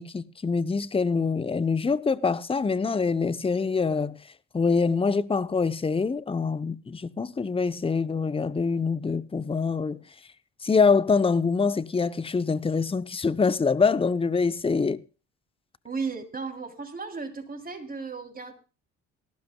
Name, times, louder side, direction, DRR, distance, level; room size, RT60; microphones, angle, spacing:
voice 1, 0.0-4.2 4.5-10.0 10.6-15.0, left 4 dB, 15° left, 0.8 m, -25 dB
voice 2, 15.8-18.5, right 4 dB, 25° right, 3.4 m, -35 dB
18.0 x 15.0 x 2.3 m
hypercardioid pair, 55°, 36 cm